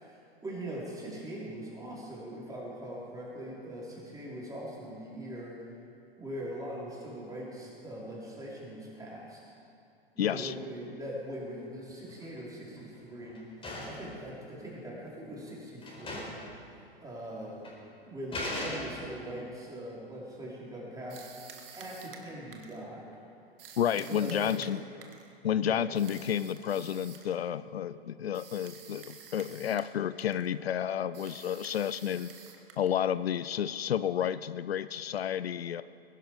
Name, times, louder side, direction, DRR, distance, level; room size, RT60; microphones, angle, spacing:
voice 1, 0.0-5.7 6.2-9.4 10.1-13.5 13.8-16.3 17.0-17.6 18.0-21.4 21.7-23.2 24.0-24.7 25.7-25.9, right 1 dB, 10° right, -6 dB, 4.9 m, -41 dB
voice 2, 10.2-10.5 23.8-24.8 25.4-32.3 32.8-35.8, left 9 dB, 80° left, 15 dB, 0.5 m, -31 dB
sound 1, 11.9-12.4 12.8-14.1 15.0-15.1 15.5-15.6 15.8-16.5 16.8-16.9 17.6-17.8 18.3-19.2, left 1 dB, 20° left, 4.3 m, -38 dB
sound 2, 21.1-22.8 23.6-25.3 25.9-27.4 28.3-29.9 30.2-30.5 31.1-33.0, right 7 dB, 65° right, 1.9 m, -50 dB
21.0 x 11.5 x 5.1 m, 2.5 s
hypercardioid pair, 100°, 30 cm